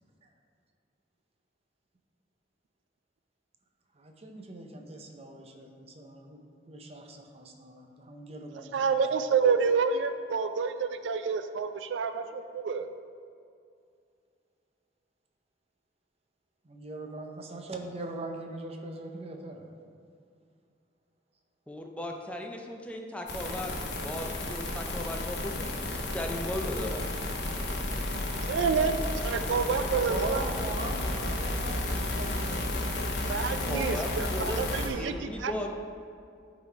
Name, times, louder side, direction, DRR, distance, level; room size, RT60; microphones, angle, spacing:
voice 1, 3.9-6.4 6.7-9.0 16.6-19.7 29.8-32.7, right 2 dB, 35° right, 3 dB, 0.7 m, -41 dB
voice 2, 8.7-12.9 28.4-30.5 33.3-35.7, right 5 dB, 75° right, 10 dB, 0.4 m, -28 dB
voice 3, 21.7-27.1 33.6-34.6 34.9-35.7, left 1 dB, 5° left, 2 dB, 0.5 m, -37 dB
sound 1, 23.3-34.9, left 1 dB, 65° left, 1.1 m, -32 dB
10.5 x 4.1 x 4.5 m, 2.4 s
head